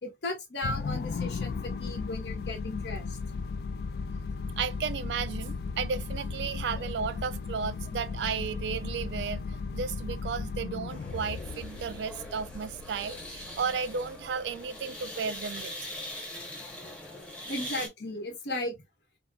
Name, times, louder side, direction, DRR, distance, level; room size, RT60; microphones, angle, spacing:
voice 1, 0.0-3.2 6.7-6.8 17.5-18.8, left 1 dB, 80° left, 1.1 m, -36 dB
sound 1, 0.6-15.1, left 4 dB, 65° left, 0.3 m, -36 dB
voice 2, 4.6-9.4 9.7-15.7, right 6 dB, 80° right, 0.3 m, -34 dB
sound 2, 10.9-17.9, left 1 dB, 5° left, 0.8 m, -42 dB
4.0 x 2.0 x 2.2 m
head